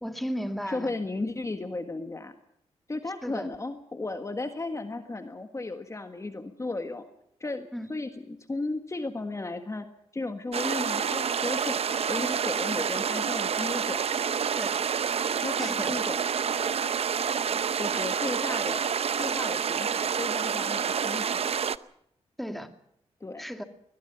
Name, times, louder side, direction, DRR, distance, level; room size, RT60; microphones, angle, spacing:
voice 1, 0.0-0.9 3.2-3.5 7.7-7.9 14.6-14.8 15.6-15.9 22.4-22.7 23.4-23.6, equal, ahead, 7 dB, 2.3 m, -34 dB
voice 2, 0.7-2.3 2.9-7.0 7.4-9.9 10.1-14.0 15.4-16.2 16.5-16.8 17.4-21.5 23.2-23.4, left 2 dB, 25° left, 7 dB, 1.6 m, -35 dB
sound 1, 10.5-21.8, right 7 dB, 60° right, 0.7 m, -28 dB
21.5 x 21.0 x 6.0 m, 0.73 s
cardioid pair, 80°, 12 cm